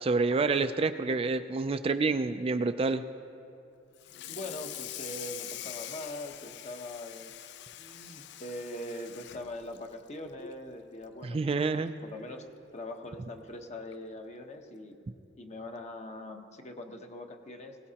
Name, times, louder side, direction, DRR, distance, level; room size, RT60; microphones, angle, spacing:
voice 1, 0.0-3.0 11.2-11.9, right 3 dB, 30° right, 10 dB, 0.3 m, -28 dB
Water tap faucet / Sink (filling or washing), 4.0-10.6 11.0-11.3 11.6-11.7 12.1-12.2 13.3-13.4 13.9-14.1, left 12 dB, 60° left, 0.4 m, -44 dB
voice 2, 4.3-7.5 7.8-11.4 11.7-12.5 12.7-15.0 15.3-17.8, left 1 dB, 35° left, 4 dB, 1.0 m, -42 dB
20.5 x 17.5 x 2.9 m, 2.6 s
head